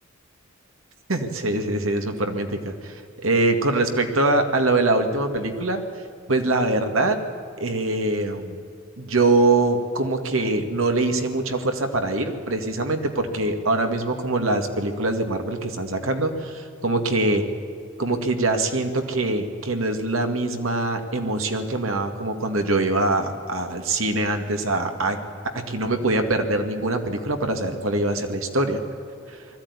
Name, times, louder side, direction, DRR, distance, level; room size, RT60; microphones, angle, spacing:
voice 1, 1.1-5.8 6.3-7.2 7.6-8.6 9.0-17.4 18.0-25.2 25.5-28.8 29.3-29.4, right 2 dB, 85° right, 6 dB, 2.2 m, -23 dB
20.5 x 14.5 x 9.7 m, 2.5 s
head